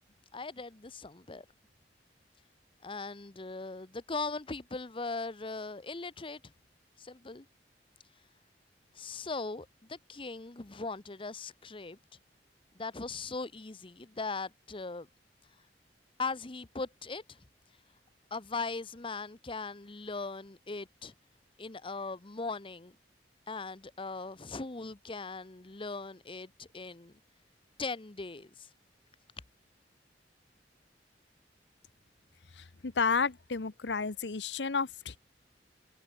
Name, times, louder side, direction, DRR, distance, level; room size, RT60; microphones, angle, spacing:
voice 1, 0.3-1.4 2.8-6.4 7.0-7.5 8.9-12.0 12.7-15.1 16.2-17.4 18.3-21.1 21.6-22.9 23.5-27.2 27.8-28.7, left 3 dB, 30° left, 0.9 m, -39 dB
voice 2, 32.8-35.2, left 5 dB, 85° left, 1.0 m, -31 dB
open air
head